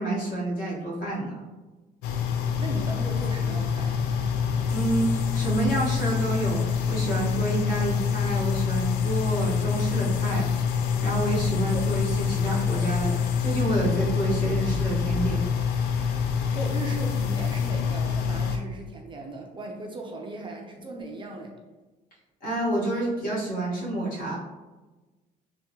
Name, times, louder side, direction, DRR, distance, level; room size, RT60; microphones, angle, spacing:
voice 1, 0.0-1.4 4.7-10.5 11.0-15.4 22.4-24.4, right 2 dB, 55° left, -6 dB, 1.5 m, -28 dB
sound 1, 2.0-18.6, left 7 dB, 75° left, 0.4 m, -26 dB
voice 2, 2.6-4.1 11.7-11.9 16.5-21.5, right 2 dB, 30° right, 1 dB, 0.4 m, -37 dB
3.5 x 2.2 x 2.8 m, 1.2 s
cardioid pair, 110°, 17 cm